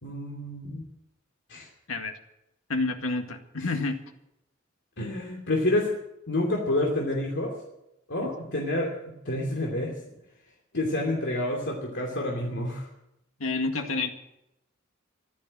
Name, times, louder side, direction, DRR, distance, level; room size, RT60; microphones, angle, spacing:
voice 1, 0.0-0.8 1.5-1.7 3.6-3.7 5.0-5.9 6.3-7.5 8.1-8.9 9.2-10.0 10.7-12.9, left 1 dB, 60° left, -1 dB, 2.8 m, -28 dB
voice 2, 2.7-4.0 8.2-8.3 13.4-14.1, left 3 dB, 85° left, 5 dB, 2.0 m, -29 dB
15.5 x 12.0 x 7.6 m, 0.86 s
head